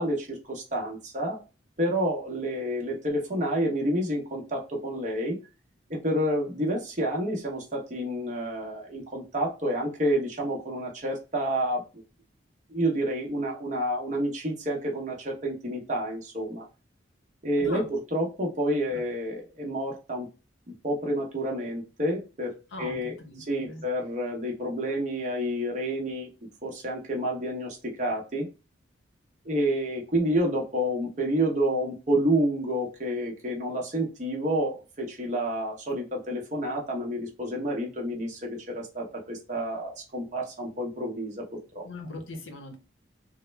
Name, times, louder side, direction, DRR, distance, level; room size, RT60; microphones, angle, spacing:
voice 1, 0.0-1.4 1.8-5.4 5.9-12.0 12.7-16.7 17.4-20.3 20.8-23.2 23.5-26.3 26.6-28.5 29.4-41.9, right 1 dB, 40° right, -1 dB, 0.9 m, -29 dB
voice 2, 22.7-23.8 41.8-42.8, left 2 dB, 85° left, 5 dB, 0.8 m, -40 dB
3.6 x 2.1 x 3.2 m, 0.31 s
head